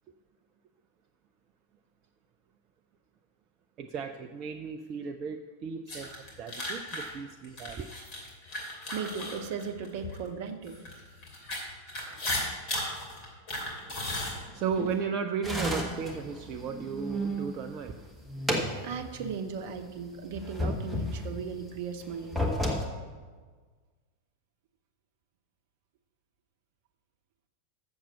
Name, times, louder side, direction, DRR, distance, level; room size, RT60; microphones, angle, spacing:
voice 1, 3.8-7.9 13.8-18.1, right 6 dB, 35° right, 5 dB, 0.4 m, -35 dB
sound 1, 5.9-10.2 10.7-14.9, left 1 dB, 40° left, 2.8 m, -36 dB
voice 2, 8.9-10.8 18.8-22.4, right 6 dB, 50° right, 7 dB, 0.9 m, -37 dB
Crunching and spooky creaking from freezer door, 15.4-17.5 18.0-19.4 19.7-19.8 20.3-21.5 22.1-22.9, equal, ahead, 1.5 m, -32 dB
7.3 x 7.1 x 7.0 m, 1.5 s
figure-of-eight pair, 90°, 0 cm